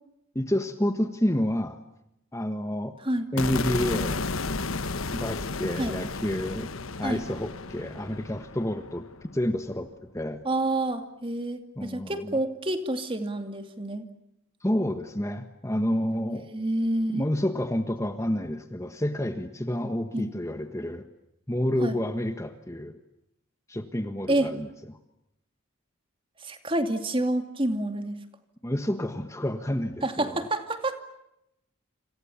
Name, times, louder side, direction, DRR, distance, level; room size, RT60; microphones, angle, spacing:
voice 1, 0.3-1.8 2.3-3.0 3.3-4.2 5.1-6.7 7.0-10.4 11.8-12.4 14.6-16.5 17.1-21.0 21.5-23.0 23.7-25.0 28.6-30.5, left 1 dB, 15° left, 8 dB, 1.4 m, -29 dB
sound 1, 3.4-9.6, left 3 dB, 75° left, 1.3 m, -33 dB
voice 2, 10.4-14.0 16.5-17.2 20.1-20.2 21.8-22.0 24.3-24.5 26.4-28.2 30.0-31.0, right 1 dB, 25° right, 7 dB, 2.5 m, -28 dB
28.5 x 27.0 x 7.2 m, 0.84 s
head